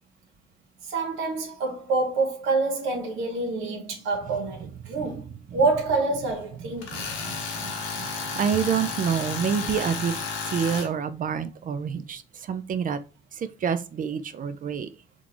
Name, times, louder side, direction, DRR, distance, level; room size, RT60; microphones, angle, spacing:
voice 1, 0.9-7.1, right 3 dB, 85° right, 1.1 m, -27 dB
Tools, 6.8-10.9, left 4 dB, 90° left, 1.0 m, -32 dB
voice 2, 8.3-10.1 10.5-12.2 12.5-13.0 13.6-14.9, right 7 dB, 45° right, 0.4 m, -27 dB
3.7 x 2.4 x 3.0 m
cardioid pair, 90°, 20 cm